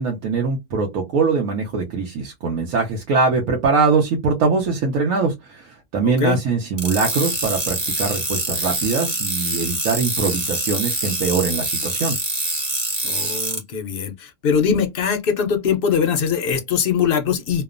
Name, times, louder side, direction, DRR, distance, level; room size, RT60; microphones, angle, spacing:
voice 1, 0.0-12.2, right 4 dB, 85° right, 1.1 m, -22 dB
voice 2, 6.0-6.4 13.0-17.6, left 7 dB, 60° left, 0.6 m, -22 dB
sound 1, 6.8-13.6, right 2 dB, 20° right, 1.0 m, -25 dB
2.9 x 2.1 x 2.4 m
omnidirectional pair, 1.4 m